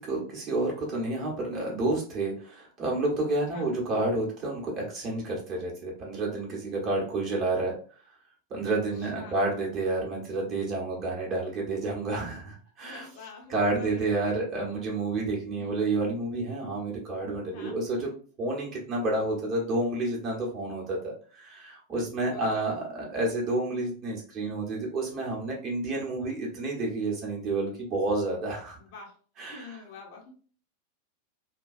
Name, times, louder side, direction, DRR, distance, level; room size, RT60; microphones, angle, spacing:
voice 1, 0.0-7.8 8.5-13.1 13.5-18.1 18.4-28.8 29.4-29.7, right 2 dB, 30° right, -2 dB, 1.0 m, -30 dB
voice 2, 3.3-3.7 8.7-9.5 12.8-14.4 15.6-15.8 17.5-17.8 21.9-22.7 28.7-29.2 29.4-30.3, left 3 dB, 45° left, 0 dB, 0.8 m, -46 dB
2.2 x 2.2 x 2.6 m, 0.41 s
figure-of-eight pair, 90°, 0 cm